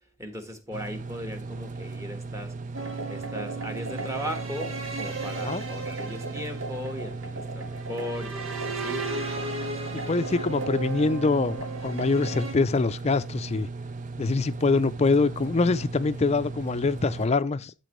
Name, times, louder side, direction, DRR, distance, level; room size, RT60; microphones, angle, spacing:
voice 1, 0.2-2.5 3.1-9.1, equal, 15° right, 1.4 m, -37 dB
sound 1, 0.7-17.3, right 3 dB, 40° right, 0.5 m, -37 dB
sound 2, 2.7-12.5, right 3 dB, 90° right, 1.6 m, -35 dB
voice 2, 9.9-13.7 14.2-17.7, left 3 dB, 30° left, 0.4 m, -24 dB
13.0 x 4.4 x 3.1 m
head